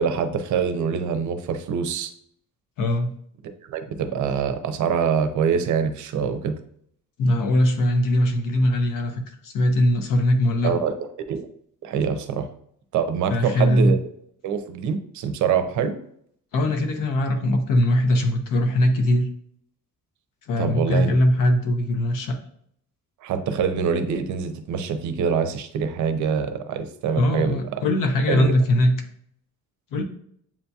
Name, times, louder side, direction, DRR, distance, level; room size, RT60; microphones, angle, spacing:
voice 1, 0.0-2.1 3.7-6.6 10.6-11.0 11.3-11.5 11.8-12.5 12.9-14.0 14.4-16.0 20.6-21.2 23.2-27.6 28.3-28.5, right 6 dB, 65° right, 9 dB, 0.5 m, -24 dB
voice 2, 2.8-3.1 7.2-10.8 13.3-14.0 16.5-19.3 20.5-22.4 27.1-28.9 29.9-30.0, left 1 dB, 80° left, 5 dB, 0.8 m, -21 dB
7.2 x 2.7 x 2.3 m, 0.66 s
cardioid pair, 170°, 32 cm